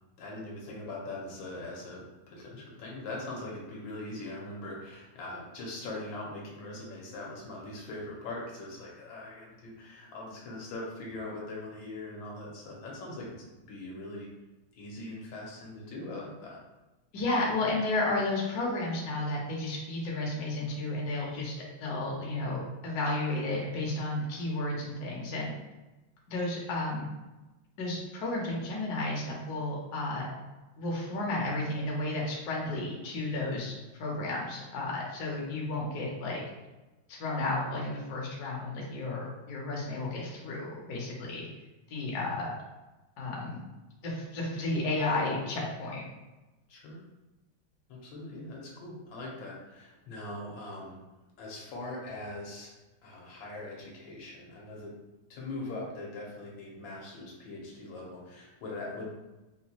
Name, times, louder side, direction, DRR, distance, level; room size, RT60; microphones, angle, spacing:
voice 1, 0.2-14.3 14.7-16.6 46.7-47.0 47.9-51.0 51.4-52.7 53.0-54.9 55.3-59.1, left 2 dB, 80° left, -3 dB, 1.6 m, -41 dB
voice 2, 17.1-25.5 26.3-27.1 27.8-30.3 30.8-33.7 34.0-36.4 37.1-41.5 41.9-42.5 43.2-43.6 44.0-46.0, left 2 dB, 60° left, -3 dB, 1.1 m, -32 dB
4.0 x 2.2 x 2.8 m, 1.1 s
omnidirectional pair, 2.2 m